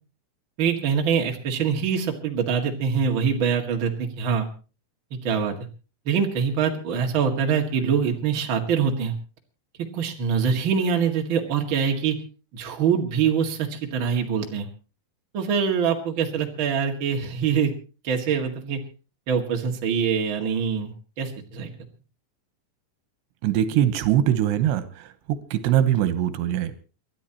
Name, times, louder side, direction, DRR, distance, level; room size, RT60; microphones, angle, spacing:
voice 1, 0.6-4.5 5.1-5.6 6.1-9.1 9.9-12.2 12.5-14.7 15.3-17.7 18.0-18.8 19.3-21.7, right 6 dB, 40° right, 2 dB, 2.1 m, -24 dB
voice 2, 23.4-26.7, right 11 dB, 85° right, 11 dB, 3.1 m, -22 dB
29.5 x 12.5 x 2.9 m, 0.34 s
omnidirectional pair, 4.8 m